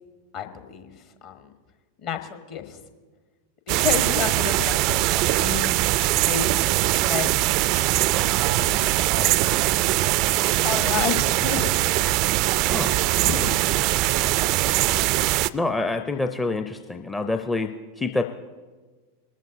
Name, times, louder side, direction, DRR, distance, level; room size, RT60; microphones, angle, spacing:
voice 1, 0.3-1.5 2.0-2.8 3.7-5.8 6.1-8.9 9.2-9.7 10.6-11.7 12.7-13.5 14.2-14.5, left 8 dB, 40° left, 7 dB, 1.2 m, -32 dB
sound 1, 3.7-15.5, right 17 dB, 40° right, 0.3 m, -22 dB
voice 2, 15.5-18.2, left 2 dB, 10° left, 6 dB, 0.5 m, -27 dB
21.0 x 13.0 x 2.7 m, 1.4 s
figure-of-eight pair, 90°, 0 cm